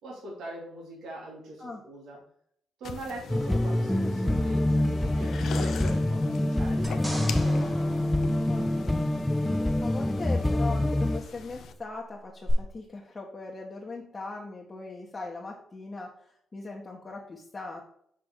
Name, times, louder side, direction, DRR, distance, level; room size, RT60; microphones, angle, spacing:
voice 1, 0.0-2.2 2.8-7.8, right 1 dB, 75° right, -4 dB, 3.0 m, -42 dB
sound 1, 2.8-11.7, left 6 dB, 65° left, 0.7 m, -43 dB
sound 2, 3.3-11.2, left 1 dB, 10° left, 0.4 m, -26 dB
sound 3, 6.8-9.3 12.5-12.6, equal, 15° right, 1.5 m, -39 dB
voice 2, 8.4-9.1 9.3-17.8, left 3 dB, 25° left, -3 dB, 1.4 m, -40 dB
6.3 x 5.9 x 3.9 m, 0.68 s
cardioid pair, 90°, 0 cm